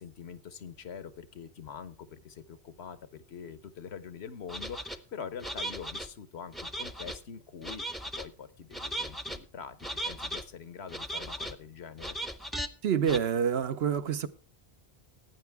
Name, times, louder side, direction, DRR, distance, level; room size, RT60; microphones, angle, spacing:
voice 1, 0.0-7.8 8.2-12.2, left 7 dB, 85° left, 1.2 m, -44 dB
sound 1, 4.5-5.0 5.4-6.1 6.5-7.2 7.6-8.3 8.7-9.4 9.8-10.4 10.9-11.5 12.0-12.7 13.0-13.2, right 1 dB, ahead, 0.6 m, -37 dB
voice 2, 12.8-14.3, right 7 dB, 75° right, 1.0 m, -27 dB
15.0 x 9.5 x 3.5 m
omnidirectional pair, 1.1 m